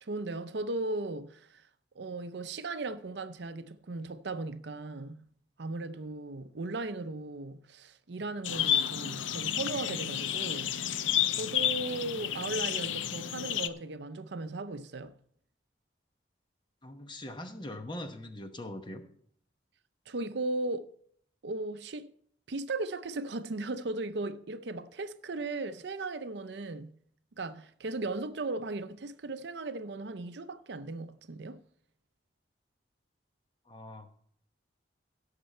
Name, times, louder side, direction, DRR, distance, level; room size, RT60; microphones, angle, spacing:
voice 1, 0.0-1.7 2.0-5.3 5.6-10.7 11.3-15.1 20.1-20.9 21.4-22.1 22.5-27.0 27.4-31.6, right 2 dB, 65° right, 0.6 m, -37 dB
sound 1, 8.4-13.7, left 10 dB, 90° left, 0.5 m, -31 dB
voice 2, 16.8-19.0 33.7-34.1, left 1 dB, 25° left, 1.0 m, -42 dB
16.5 x 6.8 x 4.4 m
head